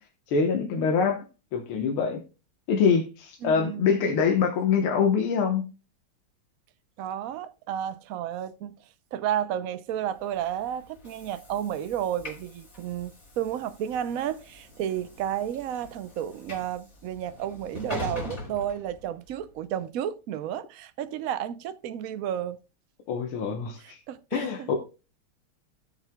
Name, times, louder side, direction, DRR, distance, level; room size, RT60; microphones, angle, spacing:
voice 1, 0.3-1.2 1.5-2.2 2.7-5.6 23.1-24.0 24.3-24.7, left 6 dB, 80° left, 2.0 m, -24 dB
voice 2, 3.4-3.9 7.0-8.7 9.1-22.6 23.8-24.7, right 10 dB, 75° right, 0.8 m, -32 dB
Train / Sliding door, 10.2-19.5, left 1 dB, 40° left, 3.3 m, -42 dB
16.0 x 7.1 x 2.2 m
omnidirectional pair, 2.3 m